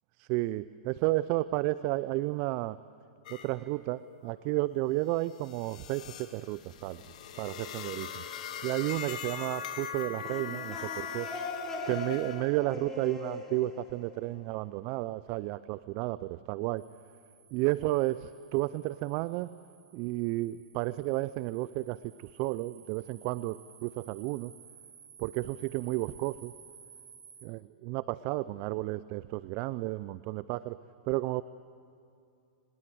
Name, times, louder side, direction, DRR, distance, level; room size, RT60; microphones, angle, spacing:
voice 1, 0.2-2.8 3.3-7.0 7.4-8.2 8.6-11.3 11.9-16.8 17.5-19.5 19.9-24.5 25.2-26.5 27.4-30.8 31.1-31.4, right 18 dB, 45° right, 17 dB, 0.5 m, -32 dB
sound 1, 3.2-3.5 3.9-12.5, left 8 dB, 65° left, 2.4 m, -41 dB
sound 2, 10.0-14.7, left 2 dB, 10° left, 4.8 m, -40 dB
sound 3, 16.8-27.5, right 7 dB, 80° right, 4.9 m, -56 dB
25.0 x 20.0 x 7.8 m, 2.5 s
hypercardioid pair, 115°, 4 cm